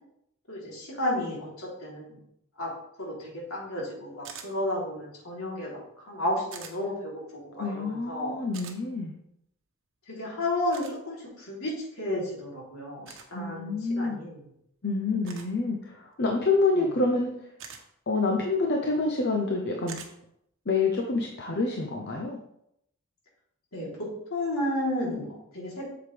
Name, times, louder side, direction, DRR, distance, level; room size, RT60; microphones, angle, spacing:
voice 1, 0.5-2.2 2.6-2.7 3.0-8.4 10.1-14.4 23.7-25.9, left 1 dB, 70° left, -4 dB, 3.4 m, -32 dB
sound 1, 4.2-4.5 6.5-6.7 8.5-8.8 10.7-10.9 13.0-13.3 15.3-15.5 17.6-17.8 19.9-20.1, right 7 dB, 60° right, 1.1 m, -43 dB
voice 2, 7.6-9.1 13.3-14.2 14.8-17.5 18.1-20.0 20.7-22.4, left 3 dB, 50° left, 2 dB, 0.8 m, -27 dB
7.9 x 6.9 x 3.4 m, 0.76 s
head